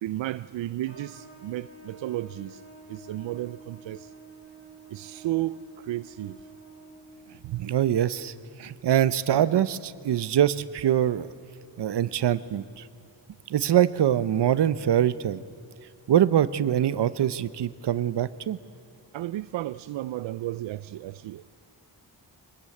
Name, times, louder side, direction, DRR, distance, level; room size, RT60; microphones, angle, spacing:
voice 1, 0.0-2.6 2.9-4.1 4.9-6.4 7.4-7.7 19.1-21.4, right 15 dB, 90° right, 0.6 m, -33 dB
Trumpet, 0.8-7.4, right 3 dB, 30° left, 5.4 m, -49 dB
voice 2, 7.6-8.3 8.6-11.3 11.8-12.8 13.5-15.4 16.1-18.6, right 10 dB, 65° right, 0.9 m, -24 dB
25.5 x 20.5 x 8.6 m
wide cardioid pair, 135°, 43 cm